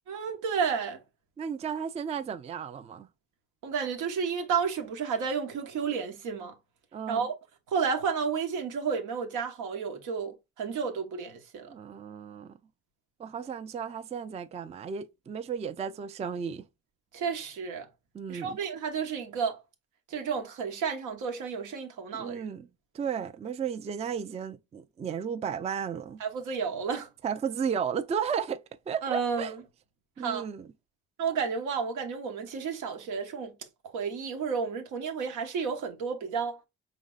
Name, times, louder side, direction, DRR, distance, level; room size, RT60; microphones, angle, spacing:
voice 1, 0.1-1.0 3.6-6.5 7.1-7.3 7.7-11.7 17.1-17.9 18.3-19.6 20.1-22.4 26.2-27.1 29.0-29.6 30.2-30.4 31.2-33.6 33.9-36.6, right 6 dB, 85° right, 1.1 m, -31 dB
voice 2, 1.4-3.1 6.9-7.3 11.7-12.5 13.2-16.6 18.1-18.6 22.1-22.7 22.9-26.2 27.2-29.5 30.2-30.7, right 7 dB, 20° right, 0.3 m, -34 dB
5.2 x 3.2 x 2.3 m
cardioid pair, 90°, 30 cm